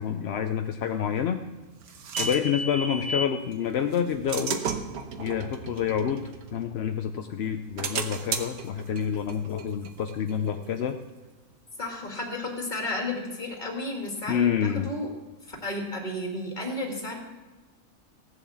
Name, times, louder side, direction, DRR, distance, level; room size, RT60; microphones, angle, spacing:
voice 1, 0.0-1.4 2.2-4.6 5.2-6.2 6.5-11.0 14.3-14.9, left 8 dB, 60° left, 6 dB, 0.7 m, -28 dB
sound 1, 1.2-3.4 3.9-7.0 7.4-10.9, right 4 dB, 90° right, 1.4 m, -34 dB
voice 2, 11.8-15.1 15.5-17.2, left 2 dB, 30° left, 0 dB, 2.4 m, -33 dB
16.0 x 7.2 x 7.2 m, 1.2 s
omnidirectional pair, 1.5 m